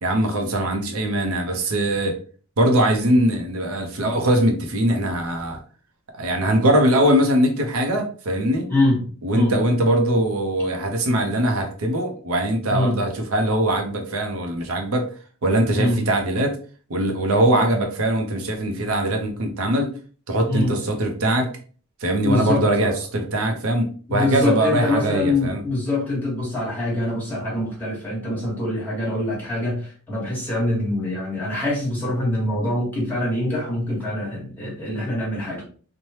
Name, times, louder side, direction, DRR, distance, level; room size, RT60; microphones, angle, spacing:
voice 1, 0.0-2.2 2.6-5.6 6.1-8.7 9.2-15.1 15.4-16.6 16.9-19.9 20.3-21.5 22.0-25.6, right 1 dB, 70° right, 4 dB, 0.6 m, -21 dB
voice 2, 8.7-9.0 9.3-9.5 12.7-13.0 15.7-16.0 20.5-20.7 22.2-22.9 24.1-35.7, left 1 dB, 10° left, -6 dB, 1.3 m, -24 dB
3.1 x 2.1 x 2.8 m, 0.41 s
head